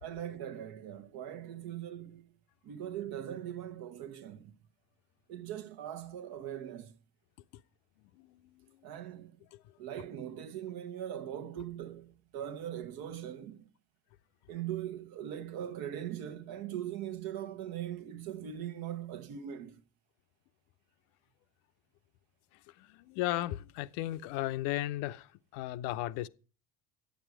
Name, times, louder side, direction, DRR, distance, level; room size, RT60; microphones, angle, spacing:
voice 1, 0.0-2.3 2.6-4.6 5.3-7.0 8.8-9.3 9.8-13.7 14.5-19.8, right 10 dB, 55° right, 1.0 m, -40 dB
voice 2, 22.8-26.3, left 15 dB, 65° left, 0.6 m, -35 dB
10.5 x 8.4 x 4.8 m
hypercardioid pair, 65°, 43 cm